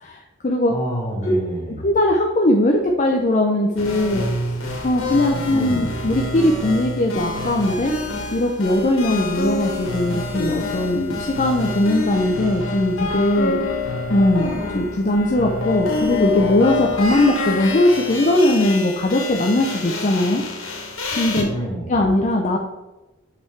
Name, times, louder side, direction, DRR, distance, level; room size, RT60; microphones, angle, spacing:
voice 1, 0.0-0.7 1.2-1.3 1.8-4.3 4.8-7.9 8.3-13.6 14.1-20.4 21.2-21.5 21.9-22.6, left 1 dB, 35° left, 1 dB, 0.5 m, -19 dB
voice 2, 0.7-1.9 5.5-6.0 21.5-22.0, equal, 15° left, -5 dB, 1.9 m, -28 dB
sound 1, 3.8-21.4, left 2 dB, 80° left, 1.4 m, -27 dB
8.0 x 3.5 x 4.5 m, 1.1 s
head